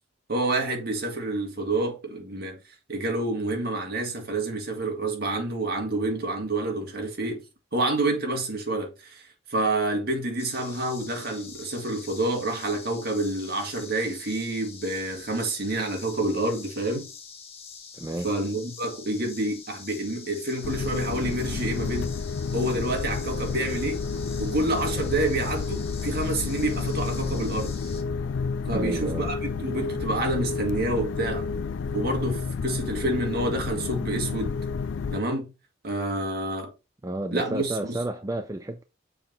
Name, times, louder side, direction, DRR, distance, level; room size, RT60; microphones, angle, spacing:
voice 1, 0.3-2.6 2.9-7.4 7.7-9.2 9.5-17.1 18.2-22.1 22.5-24.0 24.4-27.8 28.7-31.5 31.9-34.5 35.1-35.5 35.8-36.7 37.3-37.7, right 2 dB, 55° right, 1.9 m, -28 dB
sound 1, 10.4-28.0, left 6 dB, 35° left, 1.4 m, -45 dB
voice 2, 17.9-18.3 28.7-29.3 37.0-38.8, right 1 dB, 15° right, 0.5 m, -31 dB
sound 2, 20.6-35.2, left 5 dB, 75° left, 0.4 m, -30 dB
6.9 x 3.8 x 5.4 m
head